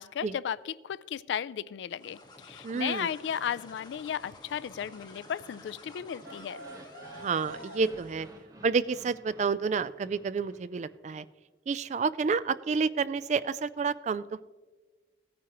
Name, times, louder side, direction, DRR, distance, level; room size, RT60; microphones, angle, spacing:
voice 1, 0.0-2.2 2.4-6.6, left 8 dB, 80° left, 19 dB, 0.3 m, -35 dB
sound 1, 1.9-8.4, left 2 dB, 25° left, 1.5 m, -51 dB
voice 2, 2.6-3.1 7.2-8.3 8.6-11.2 11.7-14.4, right 5 dB, 40° right, 16 dB, 0.3 m, -29 dB
sound 2, 5.8-8.0, right 1 dB, 75° right, 0.6 m, -47 dB
sound 3, 6.1-11.3, right 1 dB, 20° right, 1.0 m, -53 dB
16.5 x 9.4 x 3.0 m, 1.3 s
head